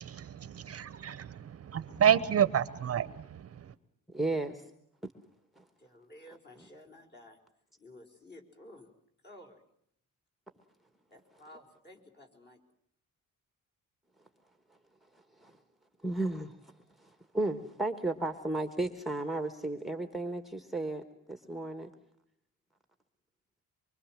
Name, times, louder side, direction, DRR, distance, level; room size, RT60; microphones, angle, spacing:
voice 1, 0.0-3.7, right 9 dB, 45° right, 15 dB, 0.9 m, -29 dB
voice 2, 4.1-4.7 5.6-5.7 6.6-6.7 15.4-15.6 16.0-16.7 17.0-21.0 21.3-21.9, right 2 dB, ahead, 8 dB, 1.4 m, -34 dB
voice 3, 5.8-7.4 7.8-8.9 9.2-9.6 11.1-12.6, left 1 dB, 30° left, 3 dB, 4.9 m, -53 dB
25.0 x 24.5 x 7.4 m, 0.71 s
cardioid pair, 150°, 33 cm